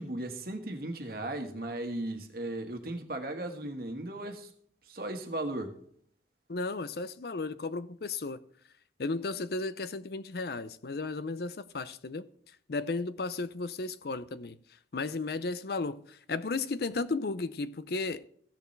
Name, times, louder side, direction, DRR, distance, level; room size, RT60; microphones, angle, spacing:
voice 1, 0.0-4.5 4.9-5.7, right 1 dB, 55° right, 1.6 m, -36 dB
voice 2, 6.5-8.4 9.0-12.3 12.7-14.6 14.9-18.3, left 3 dB, 60° left, 0.6 m, -34 dB
16.0 x 6.9 x 3.3 m
head